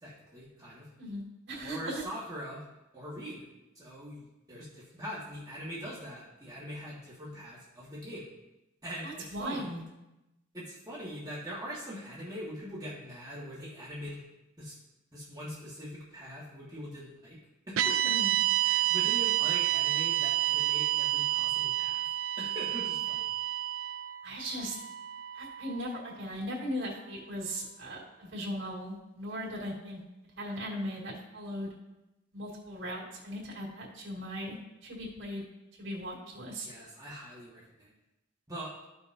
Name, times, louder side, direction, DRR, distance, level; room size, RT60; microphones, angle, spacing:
voice 1, 0.0-0.9 1.6-2.6 2.9-3.4 3.7-8.3 8.8-9.7 10.5-14.2 14.6-14.7 15.1-17.4 17.7-18.1 18.6-22.1 22.4-23.3 36.6-37.9 38.5-38.7, equal, 20° right, -9 dB, 1.7 m, -42 dB
voice 2, 1.0-2.0 9.0-9.8 18.0-18.3 24.2-24.8 25.3-30.0 30.4-31.7 32.3-35.4 35.8-36.7, equal, 65° right, -5 dB, 2.5 m, -38 dB
sound 1, 17.8-26.1, right 14 dB, 90° right, 0.5 m, -29 dB
13.5 x 5.5 x 2.7 m, 0.97 s
head